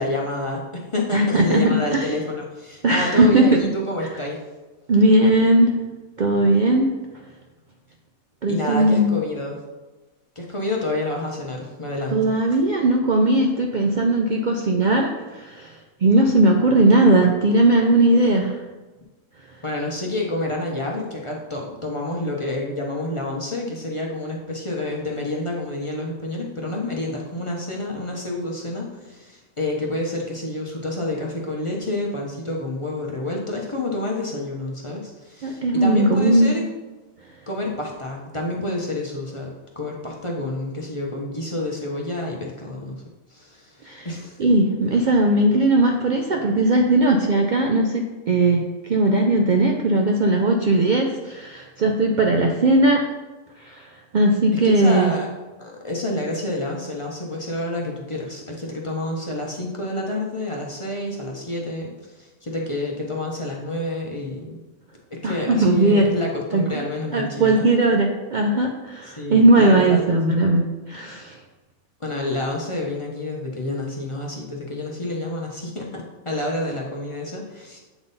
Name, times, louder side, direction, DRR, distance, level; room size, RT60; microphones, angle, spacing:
voice 1, 0.0-4.4 8.5-9.6 10.4-12.3 19.6-36.6 37.5-43.0 43.3-44.4 54.7-55.3 55.6-64.6 65.1-67.8 69.0-70.0 72.0-77.8, left 1 dB, 30° left, -2 dB, 0.6 m, -28 dB
voice 2, 1.1-2.1 2.8-3.6 4.9-5.8 6.2-6.9 8.4-9.2 12.1-15.7 16.0-18.6 35.4-36.5 43.9-44.1 44.4-53.0 53.6-53.8 54.1-55.1 65.2-66.1 66.5-66.6 67.1-71.4, right 1 dB, 90° right, 2 dB, 0.4 m, -18 dB
8.1 x 3.7 x 4.0 m, 1.2 s
omnidirectional pair, 1.5 m